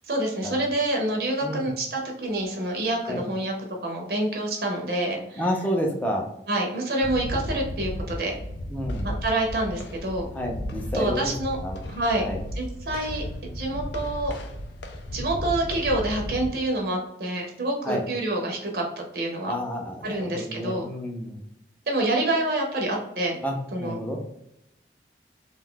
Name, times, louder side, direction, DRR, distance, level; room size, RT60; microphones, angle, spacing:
voice 1, 0.1-3.5 3.8-5.5 6.5-8.4 9.0-10.3 10.9-11.6 11.9-12.2 12.6-13.2 13.5-14.3 15.1-19.5 20.0-20.8 21.9-23.4 23.7-24.0, right 1 dB, 60° right, 1 dB, 0.6 m, -27 dB
voice 2, 5.4-6.3 8.7-9.1 10.3-11.3 11.6-11.8 12.2-12.4 17.8-18.0 19.4-21.4 23.4-24.2, equal, 10° left, 0 dB, 0.4 m, -29 dB
sound 1, 7.0-16.5, left 1 dB, 80° left, 0.4 m, -34 dB
2.6 x 2.3 x 3.6 m, 0.79 s
head